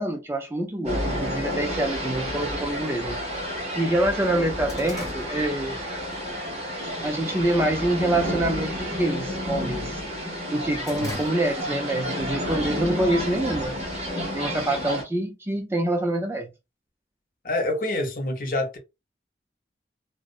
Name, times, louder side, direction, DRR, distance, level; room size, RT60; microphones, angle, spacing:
voice 1, 0.0-3.2 3.7-5.8 7.0-10.0 10.5-13.8 14.3-16.5, right 1 dB, 15° right, 0.3 m, -26 dB
sound 1, 0.8-15.0, equal, 35° right, 0.9 m, -30 dB
sound 2, 1.8-1.9 2.8-2.9 3.4-3.5 3.8-6.2 6.6-6.9 7.4-7.9 8.1-8.4 8.7-10.0 10.4-11.9 12.2-12.3 13.2-14.1, equal, 20° left, 0.9 m, -42 dB
voice 2, 17.4-18.8, left 2 dB, 50° left, 0.6 m, -27 dB
2.6 x 2.0 x 2.4 m
head